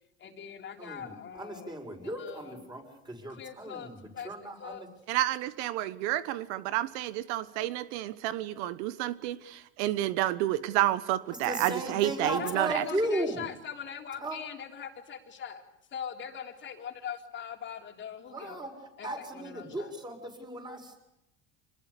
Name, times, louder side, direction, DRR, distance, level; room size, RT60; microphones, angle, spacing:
voice 1, 0.2-1.8 2.0-2.6 3.3-4.3 4.6-4.9 12.3-15.6 15.9-18.7 19.0-19.9, left 8 dB, 35° left, 4 dB, 3.6 m, -42 dB
voice 2, 0.8-4.9 11.4-13.4 14.2-14.4 18.3-18.7 19.0-21.0, right 1 dB, 10° right, 4 dB, 6.6 m, -36 dB
voice 3, 5.1-12.8, right 14 dB, 70° right, 15 dB, 1.3 m, -30 dB
26.5 x 21.0 x 8.4 m, 0.90 s
supercardioid pair, 120°, 35 cm